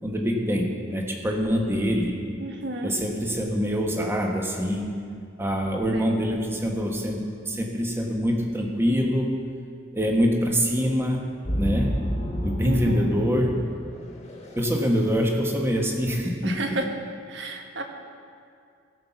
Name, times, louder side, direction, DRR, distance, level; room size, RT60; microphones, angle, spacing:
voice 1, 0.0-2.2 2.8-4.9 5.4-9.4 9.9-12.0 12.4-13.6 14.5-16.8, equal, 15° right, 1 dB, 1.3 m, -25 dB
voice 2, 2.4-2.9 5.9-6.2 12.6-13.0 16.4-16.9 17.3-17.8, right 2 dB, 70° right, 4 dB, 1.3 m, -31 dB
sound 1, 11.4-14.7, equal, 35° left, 1.7 m, -30 dB
17.0 x 5.8 x 7.1 m, 2.3 s
head